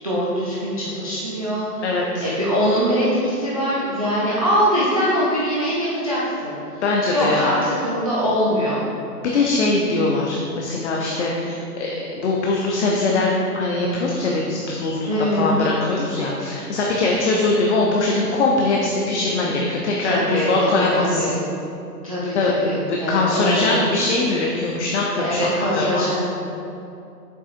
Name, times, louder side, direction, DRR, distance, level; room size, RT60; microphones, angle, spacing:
voice 1, 0.0-1.8 2.2-6.8 7.1-8.8 15.1-15.5 20.0-21.3 22.0-23.8 25.2-26.2, equal, 25° right, -8 dB, 0.4 m, -22 dB
voice 2, 1.8-2.2 6.8-7.6 9.2-21.4 22.3-22.5 22.9-26.2, left 2 dB, 45° left, -2 dB, 0.7 m, -22 dB
7.3 x 5.3 x 2.5 m, 2.7 s
hypercardioid pair, 145°, 48 cm